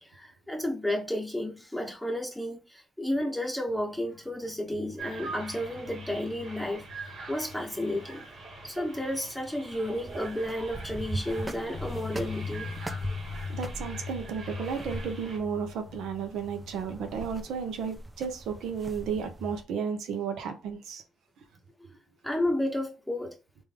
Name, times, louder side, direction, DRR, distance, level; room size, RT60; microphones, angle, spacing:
voice 1, 0.0-8.2 8.6-12.7 22.2-23.4, left 1 dB, ahead, 1.2 m, -32 dB
sound 1, 3.7-9.1 9.4-9.6 10.7-17.3, left 5 dB, 70° left, 0.5 m, -43 dB
sound 2, 5.0-15.4, right 3 dB, 55° right, 1.6 m, -44 dB
sound 3, 9.6-19.6, right 2 dB, 20° right, 0.4 m, -42 dB
voice 2, 13.5-21.0, right 6 dB, 80° right, 0.7 m, -33 dB
3.3 x 2.6 x 3.5 m
cardioid pair, 90°, 0 cm